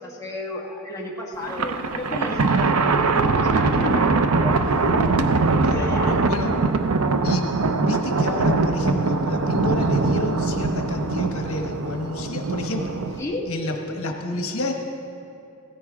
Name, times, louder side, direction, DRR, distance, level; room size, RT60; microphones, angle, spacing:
voice 1, 0.0-4.8 5.7-6.2 12.6-13.5, left 1 dB, 15° left, -3 dB, 1.6 m, -33 dB
Thunder, 1.4-13.2, right 3 dB, 90° right, 0.7 m, -22 dB
voice 2, 5.6-6.5 7.2-7.5 7.8-13.2 13.5-14.7, left 2 dB, 75° left, 3 dB, 1.2 m, -30 dB
16.5 x 14.5 x 3.6 m, 2.6 s
head